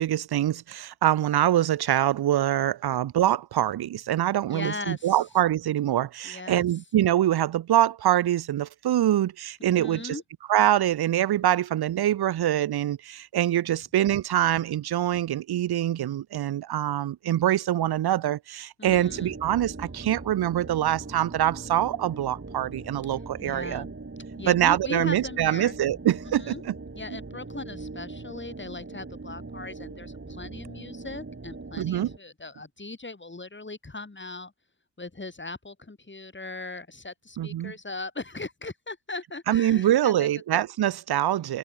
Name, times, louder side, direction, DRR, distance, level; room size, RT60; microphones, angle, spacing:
voice 1, 0.0-10.2 10.5-23.8 24.5-26.7 31.8-32.1 37.4-37.7 39.5-41.6, right 12 dB, 85° right, 0.8 m, -24 dB
voice 2, 4.5-5.2 6.2-6.7 9.7-10.2 18.8-19.3 23.1-23.9 24.4-25.8 26.2-26.6 26.9-34.5 35.0-40.3, left 3 dB, 30° left, 4.4 m, -39 dB
sound 1, 18.8-32.2, right 3 dB, 35° right, 5.1 m, -41 dB
cardioid pair, 50°, 37 cm